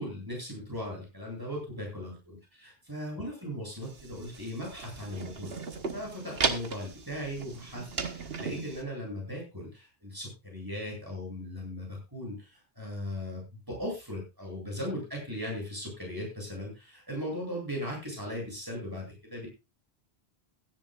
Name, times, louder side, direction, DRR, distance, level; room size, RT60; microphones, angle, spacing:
voice 1, 0.0-19.5, equal, 20° right, -2 dB, 8.1 m, -38 dB
sound 1, 3.8-8.8, right 4 dB, 65° right, 1.5 m, -36 dB
17.0 x 14.0 x 2.5 m, 0.26 s
omnidirectional pair, 1.1 m